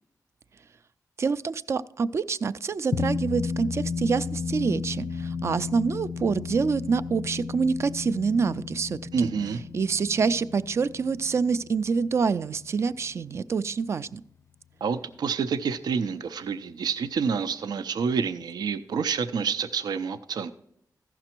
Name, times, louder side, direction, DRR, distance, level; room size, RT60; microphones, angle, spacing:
voice 1, 1.2-9.3 9.7-14.2, right 5 dB, 45° right, 15 dB, 0.3 m, -26 dB
sound 1, 2.9-13.6, left 5 dB, 40° left, 0.4 m, -34 dB
voice 2, 9.1-9.6 14.8-20.5, right 6 dB, 85° right, 10 dB, 0.6 m, -28 dB
15.0 x 6.0 x 4.4 m, 0.72 s
wide cardioid pair, 155°, 7 cm